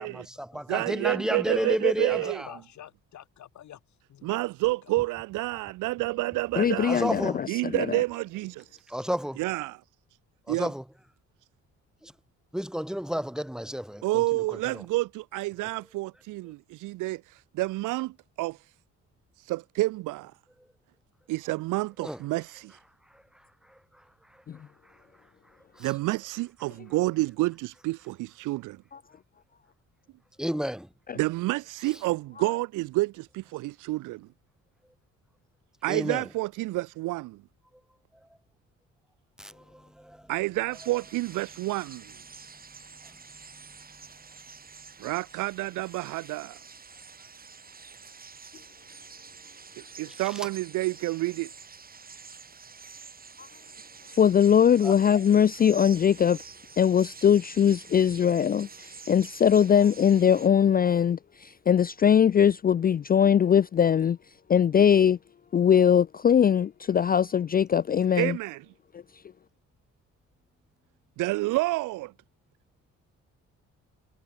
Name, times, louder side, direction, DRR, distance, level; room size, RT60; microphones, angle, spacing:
voice 1, 0.0-2.5 6.9-7.5 8.9-9.4 10.5-10.8 12.0-12.1 12.5-14.4 14.7-14.8 22.0-22.2 25.8-25.9 30.4-30.9 35.9-36.3 39.4-40.2 54.8-54.9, equal, ahead, 0.8 m, -31 dB
voice 2, 0.7-2.4 4.2-7.1 7.5-8.7 9.4-9.8 10.5-10.7 14.0-18.6 19.4-20.3 21.3-22.8 25.8-28.8 31.2-34.2 35.8-37.4 40.3-42.0 45.0-46.5 50.0-51.5 68.2-68.6 71.2-72.1, right 20 dB, 90° right, 0.6 m, -29 dB
voice 3, 1.5-1.8 2.1-3.8 4.1-5.1, left 11 dB, 70° left, 4.0 m, -47 dB
voice 4, 6.6-8.0 24.5-24.6 28.9-29.0 31.1-31.2 53.4-53.5 54.2-56.4 56.8-64.2 64.5-65.2 65.5-68.4, left 8 dB, 30° left, 0.4 m, -21 dB
sound 1, 40.7-60.5, right 5 dB, 30° right, 1.9 m, -48 dB
cardioid pair, 90°, 30 cm